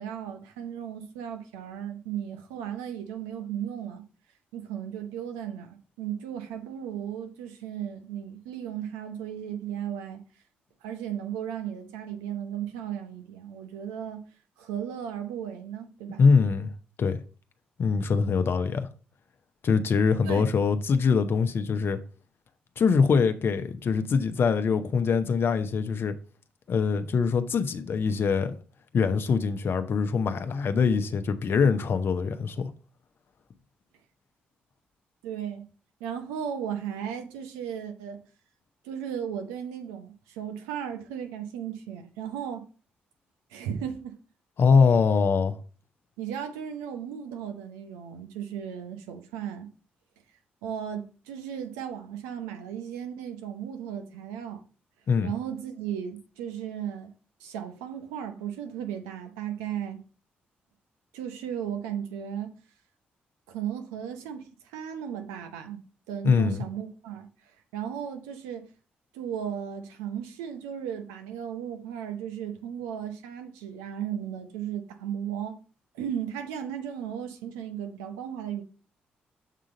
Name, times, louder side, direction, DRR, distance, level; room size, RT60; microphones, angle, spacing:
voice 1, 0.0-4.0 4.5-10.2 10.8-14.3 14.6-16.3 20.3-20.5 35.2-35.6 36.0-38.2 38.8-42.7 43.5-44.2 46.2-49.7 50.6-54.6 55.2-57.1 57.4-60.0 61.1-62.5 63.5-65.8 66.1-67.3 67.7-68.7 69.1-75.6 75.9-78.6, right 9 dB, 85° right, 0.8 m, -35 dB
voice 2, 16.2-16.7 17.0-17.2 17.8-18.9 19.6-22.0 22.8-26.1 26.7-28.6 28.9-32.7 44.6-45.6 55.1-55.3 66.2-66.6, left 5 dB, 55° left, 0.7 m, -23 dB
7.5 x 3.8 x 3.8 m
hypercardioid pair, 45°, 5 cm